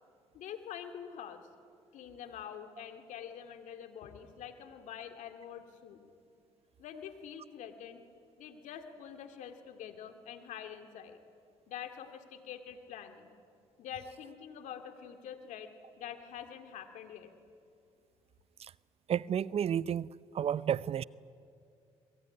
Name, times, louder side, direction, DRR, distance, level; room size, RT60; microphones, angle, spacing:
voice 1, 0.3-1.4 1.9-6.0 6.8-8.0 8.4-11.2 11.7-13.3 13.8-15.7 16.0-17.3, left 9 dB, 75° left, 2.3 m, -46 dB
voice 2, 19.1-20.1 20.3-21.0, right 9 dB, 50° right, 0.6 m, -31 dB
26.5 x 22.5 x 9.8 m
supercardioid pair, 65°, 13 cm